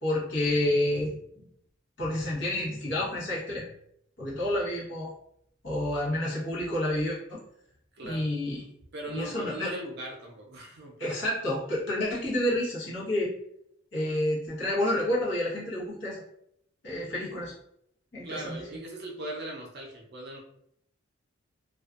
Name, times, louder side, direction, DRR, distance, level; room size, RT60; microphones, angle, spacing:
voice 1, 0.0-1.1 2.0-3.6 4.2-5.1 5.6-7.4 8.0-8.6 9.1-9.7 11.0-13.3 13.9-16.2 16.8-17.5 18.1-18.8, left 1 dB, 60° left, -7 dB, 1.0 m, -29 dB
voice 2, 7.9-8.2 8.9-11.2 18.2-20.4, right 1 dB, 50° right, 0 dB, 0.5 m, -39 dB
2.5 x 2.2 x 2.4 m, 0.74 s
head